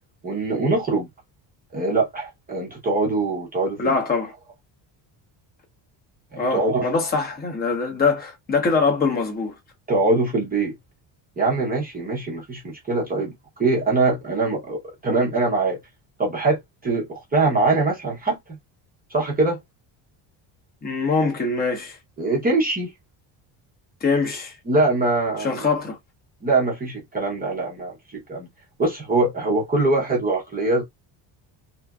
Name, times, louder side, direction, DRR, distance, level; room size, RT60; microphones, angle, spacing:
voice 1, 0.2-1.1 1.7-3.8 6.3-6.9 9.9-10.7 11.4-13.3 13.6-15.8 16.2-18.4 19.1-19.6 22.2-22.9 24.7-25.7 26.4-28.5 28.8-30.8, right 2 dB, 20° right, 0.7 m, -23 dB
voice 2, 3.8-4.3 6.4-9.5 20.8-22.0 24.0-24.5 25.4-26.0, left 4 dB, 20° left, 0.8 m, -23 dB
3.0 x 2.5 x 2.3 m
cardioid pair, 165°, 47 cm